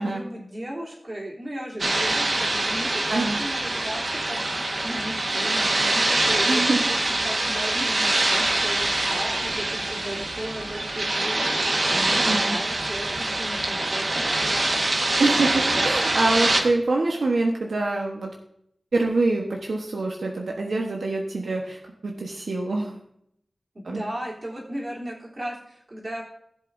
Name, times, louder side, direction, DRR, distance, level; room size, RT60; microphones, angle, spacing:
voice 1, 0.0-4.4 4.8-7.0 7.2-11.5 11.9-14.7 23.7-26.2, equal, 45° right, -4 dB, 3.3 m, -36 dB
sound 1, 1.8-16.6, right 2 dB, 60° right, 1.5 m, -24 dB
voice 2, 3.1-3.4 6.5-6.8 12.2-12.6 15.2-18.3 18.9-23.0 23.8-24.0, right 2 dB, 90° right, 0 dB, 1.1 m, -25 dB
17.0 x 7.7 x 2.7 m, 0.73 s
wide cardioid pair, 80°, 0 cm